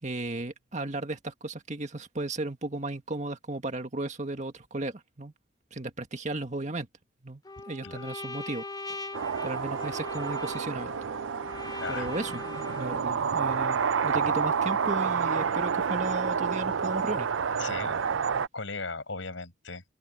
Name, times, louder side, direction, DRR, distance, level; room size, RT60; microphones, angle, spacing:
voice 1, 0.0-5.3 5.7-6.9 7.2-7.4 7.7-9.0 9.4-10.9 11.9-12.4 12.8-17.3, right 2 dB, 40° right, 1.9 m, -35 dB
Trumpet, 7.4-13.1, left 3 dB, 20° left, 2.6 m, -40 dB
sound 1, 9.1-18.5, right 6 dB, 90° right, 0.5 m, -29 dB
voice 2, 11.8-12.1 17.6-18.0 18.5-19.8, left 4 dB, 85° left, 5.6 m, -37 dB
open air
head